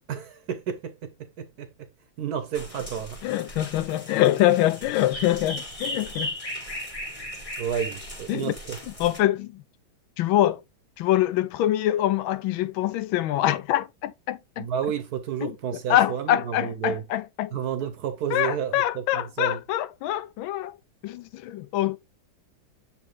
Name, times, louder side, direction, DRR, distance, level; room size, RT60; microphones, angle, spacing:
voice 1, 0.1-1.9 2.2-3.2 7.6-8.8 14.6-17.0 17.5-19.6, right 8 dB, 65° right, 1.1 m, -31 dB
sound 1, 2.5-9.2, left 1 dB, 20° left, 1.4 m, -37 dB
voice 2, 3.2-6.3 8.3-8.5 9.0-9.6 10.2-10.6 11.0-14.7 15.4-15.5 15.9-17.5 18.3-20.8 21.0-22.0, left 13 dB, 85° left, 1.4 m, -24 dB
7.1 x 4.3 x 3.2 m
omnidirectional pair, 2.1 m